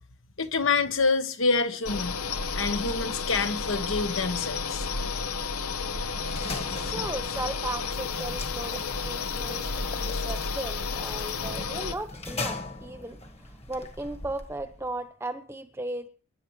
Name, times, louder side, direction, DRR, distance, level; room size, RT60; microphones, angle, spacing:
voice 1, 0.4-2.1 2.6-4.9, left 4 dB, 60° left, 1.2 m, -27 dB
sound 1, 1.9-11.9, left 4 dB, 90° left, 1.2 m, -32 dB
sound 2, 5.6-14.9, left 3 dB, 30° left, 1.8 m, -40 dB
voice 2, 6.8-13.2 13.7-16.1, right 2 dB, 10° right, 1.0 m, -36 dB
27.0 x 11.5 x 3.3 m
head